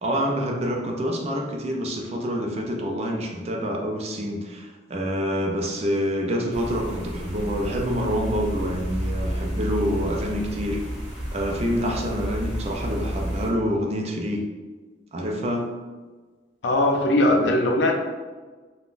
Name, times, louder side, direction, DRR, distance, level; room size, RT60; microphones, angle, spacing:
voice 1, 0.0-10.8 11.3-14.4 15.1-15.7, equal, 35° right, 1 dB, 0.4 m, -27 dB
sound 1, 6.5-13.5, equal, 5° right, 0.9 m, -31 dB
voice 2, 16.6-17.9, left 1 dB, 85° left, 3 dB, 0.5 m, -20 dB
3.6 x 2.2 x 2.5 m, 1.3 s
head